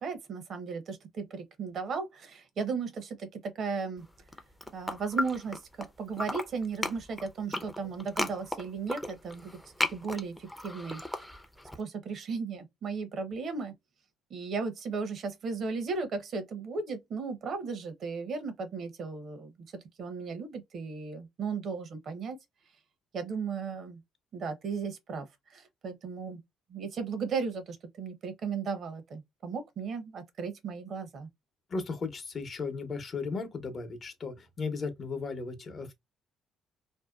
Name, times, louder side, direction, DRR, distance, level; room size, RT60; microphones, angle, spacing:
voice 1, 0.0-4.1 4.7-9.6 9.9-11.0 11.7-13.7 14.3-22.4 23.1-24.0 24.3-26.4 26.7-31.3, right 5 dB, 60° right, 0.7 m, -36 dB
sound 1, 4.2-5.9 6.1-11.8, left 1 dB, 5° left, 0.5 m, -35 dB
voice 2, 31.7-35.9, left 4 dB, 45° left, 0.8 m, -36 dB
2.6 x 2.1 x 2.3 m
supercardioid pair, 70°, 0 cm